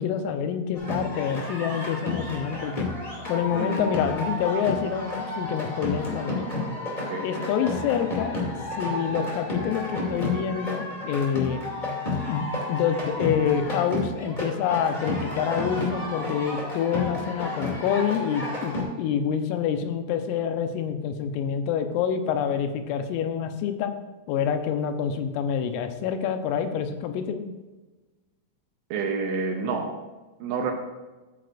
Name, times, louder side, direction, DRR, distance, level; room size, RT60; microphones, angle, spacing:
voice 1, 0.0-2.9 3.3-6.5 7.2-8.4 8.8-11.7 12.3-23.9 24.3-27.4, left 8 dB, 90° left, 7 dB, 3.4 m, -27 dB
sound 1, 0.7-18.8, left 2 dB, 25° left, 1.0 m, -31 dB
voice 2, 3.5-3.9 7.0-7.2 28.9-29.9 30.4-30.7, right 4 dB, 75° right, 2 dB, 2.6 m, -28 dB
14.0 x 9.2 x 2.6 m, 1.2 s
omnidirectional pair, 5.8 m